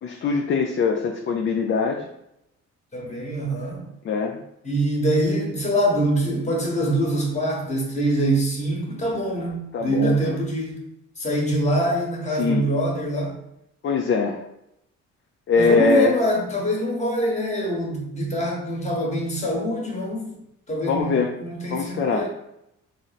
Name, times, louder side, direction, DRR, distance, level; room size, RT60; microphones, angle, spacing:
voice 1, 0.0-2.1 4.0-4.4 9.7-10.4 12.4-12.6 13.8-14.4 15.5-16.2 20.9-21.3 21.7-22.3, left 4 dB, 40° left, 1 dB, 0.4 m, -22 dB
voice 2, 2.9-3.9 4.6-10.8 11.2-13.3 15.5-20.4 20.7-22.3, right 1 dB, 25° left, -1 dB, 1.2 m, -24 dB
3.7 x 2.1 x 4.0 m, 0.82 s
cardioid pair, 90°, 30 cm